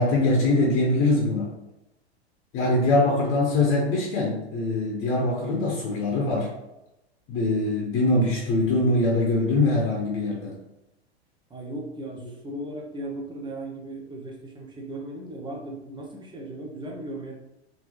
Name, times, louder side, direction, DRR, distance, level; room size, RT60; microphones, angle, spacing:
voice 1, 0.0-1.5 2.5-6.5 7.3-10.6, left 2 dB, 40° left, -3 dB, 1.3 m, -23 dB
voice 2, 2.7-3.2 11.5-17.3, right 1 dB, 15° right, 0 dB, 1.0 m, -37 dB
3.9 x 3.3 x 3.3 m, 0.93 s
figure-of-eight pair, 95°, 33 cm